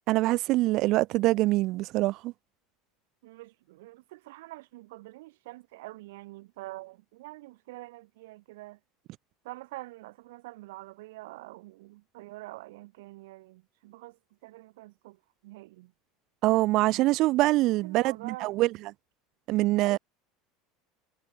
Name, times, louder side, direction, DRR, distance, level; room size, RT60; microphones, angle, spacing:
voice 1, 0.1-2.3 16.4-18.7 19.5-20.0, right 18 dB, 50° right, 1.1 m, -24 dB
voice 2, 3.2-8.8 9.4-15.9 17.8-18.6 19.8-20.0, right 20 dB, 85° right, 1.8 m, -46 dB
supercardioid pair, 150°, 0 cm